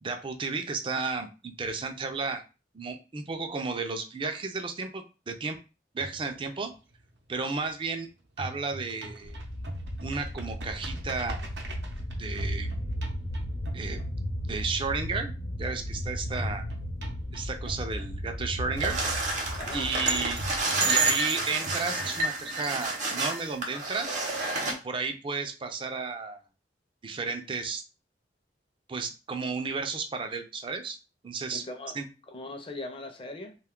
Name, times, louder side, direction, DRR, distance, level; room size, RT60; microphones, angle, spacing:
voice 1, 0.0-2.4 2.7-5.6 5.9-6.7 7.3-8.1 8.4-9.4 10.0-11.4 12.2-12.8 13.7-15.3 15.6-16.6 17.3-19.0 19.7-20.4 20.8-24.2 24.7-26.4 27.0-27.8 28.9-31.0 31.2-31.6 31.9-32.1, right 4 dB, 30° right, 6 dB, 0.4 m, -33 dB
sound 1, 6.0-8.0 8.3-14.7 16.4-18.7 20.4-22.7, right 1 dB, 80° right, 0.7 m, -43 dB
sound 2, 9.2-20.6, equal, 70° left, 0.8 m, -35 dB
sound 3, 18.8-24.7, right 3 dB, 45° right, 0.7 m, -29 dB
voice 2, 19.6-20.2 31.5-32.0 32.3-33.6, left 2 dB, 30° left, 5 dB, 0.5 m, -40 dB
2.5 x 2.3 x 3.6 m, 0.32 s
head